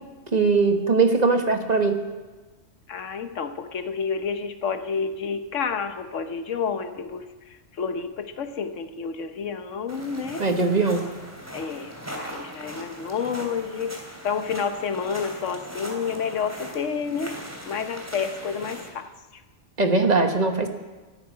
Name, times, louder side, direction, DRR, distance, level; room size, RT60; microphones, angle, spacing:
voice 1, 0.3-2.0 10.4-11.1 19.8-20.7, right 4 dB, 35° right, 5 dB, 1.3 m, -20 dB
voice 2, 2.9-10.5 11.5-17.4 17.7-19.1, left 6 dB, 90° left, 9 dB, 1.3 m, -30 dB
sound 1, 9.9-18.9, equal, 10° right, 2.7 m, -39 dB
13.5 x 9.7 x 9.5 m, 1.2 s
omnidirectional pair, 1.2 m